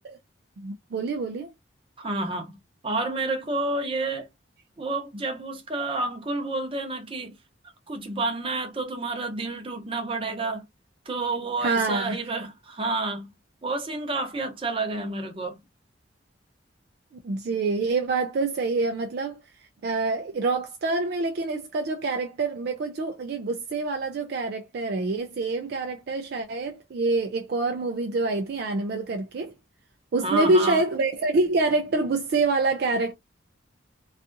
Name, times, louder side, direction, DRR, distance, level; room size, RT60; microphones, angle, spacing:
voice 1, 0.6-1.5 11.6-12.2 17.2-19.4 19.8-29.5 30.1-33.1, right 3 dB, 50° right, 0.3 m, -26 dB
voice 2, 2.0-2.6 2.8-4.3 4.8-7.3 7.9-10.6 11.1-13.3 13.6-15.6 30.2-30.8, right 2 dB, 25° right, 0.7 m, -29 dB
2.6 x 2.4 x 2.5 m
head